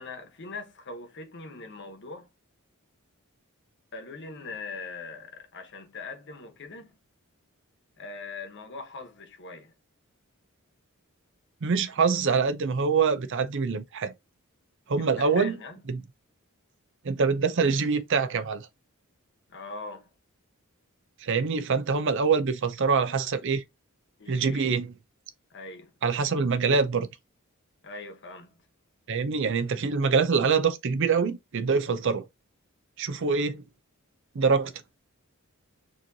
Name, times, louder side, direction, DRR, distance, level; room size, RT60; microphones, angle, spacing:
voice 1, 0.0-2.3 3.9-7.0 8.0-9.7 15.0-15.8 19.5-20.1 24.2-24.8 25.5-25.9 27.8-28.6, left 3 dB, 55° left, 1.1 m, -41 dB
voice 2, 11.6-14.1 14.9-15.6 15.9-16.0 17.0-18.7 21.2-23.6 24.3-24.9 26.0-27.1 29.1-32.3 33.0-33.6 34.3-34.7, right 5 dB, 55° right, 0.5 m, -25 dB
4.7 x 3.1 x 2.7 m
head